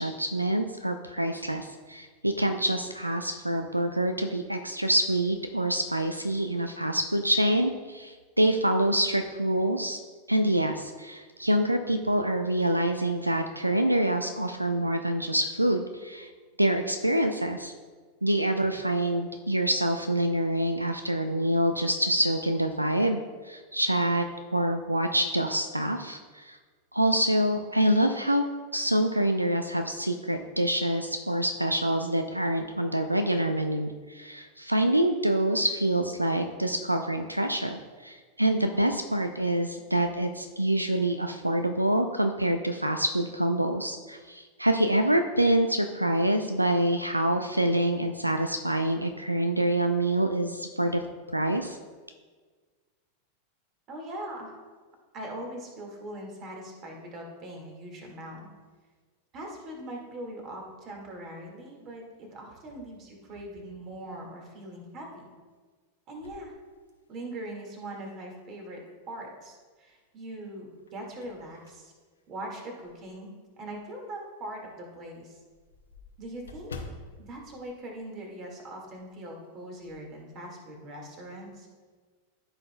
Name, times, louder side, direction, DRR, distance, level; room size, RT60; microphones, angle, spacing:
voice 1, 0.0-10.0 10.3-16.3 16.6-17.7 18.2-23.2 23.4-26.6 26.9-28.4 28.7-51.0 51.3-51.8, right 1 dB, 85° right, 7 dB, 0.4 m, -26 dB
voice 2, 53.9-54.6 55.1-58.5 59.3-65.3 66.1-66.5 67.1-68.8 69.1-71.9 72.3-75.4 76.2-76.8 77.2-81.7, right 1 dB, 35° right, 1 dB, 2.0 m, -41 dB
sound 1, 66.1-67.5 68.0-68.1 69.6-70.1 70.6-73.2 73.7-73.8 74.2-74.3 74.6-74.7 74.9-78.7 78.9-79.2 79.5-80.1, left 3 dB, 70° left, 0.8 m, -48 dB
13.5 x 5.6 x 2.3 m, 1.5 s
figure-of-eight pair, 90°, 0 cm